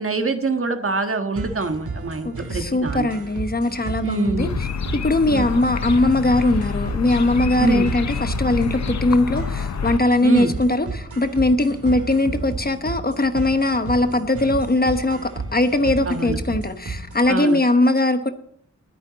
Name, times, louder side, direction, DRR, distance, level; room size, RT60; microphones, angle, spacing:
voice 1, 0.0-3.1 4.0-4.5 5.3-5.5 7.6-7.9 10.2-10.5 16.0-16.4 17.3-17.6, right 3 dB, 45° right, 6 dB, 1.5 m, -24 dB
sound 1, 1.4-17.3, right 3 dB, 75° right, 2.3 m, -32 dB
voice 2, 2.2-4.7 4.9-18.3, left 2 dB, 30° left, 8 dB, 1.0 m, -20 dB
sound 2, 4.4-10.0, left 6 dB, 60° left, 0.7 m, -28 dB
19.5 x 9.2 x 4.1 m, 0.64 s
wide cardioid pair, 110°, 30 cm